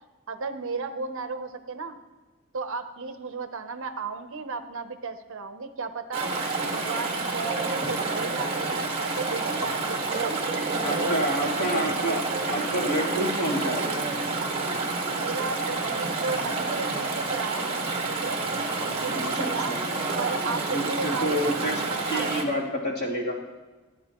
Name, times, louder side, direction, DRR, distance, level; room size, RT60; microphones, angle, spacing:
voice 1, 0.3-2.0 2.5-6.3 6.7-11.1 11.4-12.2 15.1-18.4 18.9-19.8 20.2-22.6, right 4 dB, 60° right, 9 dB, 0.8 m, -34 dB
Chatter / Stream, 6.1-22.4, right 3 dB, 25° right, 1.7 m, -29 dB
voice 2, 10.8-13.8 19.1-19.8 20.7-21.8 22.1-23.3, equal, 45° left, -5 dB, 3.0 m, -28 dB
28.5 x 9.7 x 3.0 m, 1.3 s
head